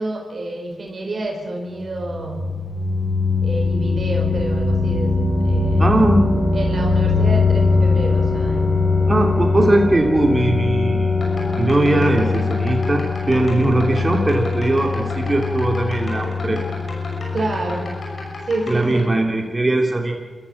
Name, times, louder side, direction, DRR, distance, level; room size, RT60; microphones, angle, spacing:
voice 1, 0.0-2.6 3.4-6.1 6.5-8.9 17.3-17.9 18.5-19.1, right 2 dB, 60° right, 1 dB, 4.8 m, -28 dB
sound 1, 1.7-18.4, left 3 dB, 45° left, 5.6 m, -21 dB
voice 2, 5.8-6.2 9.1-11.3 11.6-16.6 18.7-20.1, right 2 dB, 30° right, 2 dB, 3.3 m, -19 dB
sound 2, 11.1-19.0, left 2 dB, 65° left, 6.4 m, -35 dB
24.5 x 14.0 x 7.4 m, 1.5 s
cardioid pair, 45°, 0 cm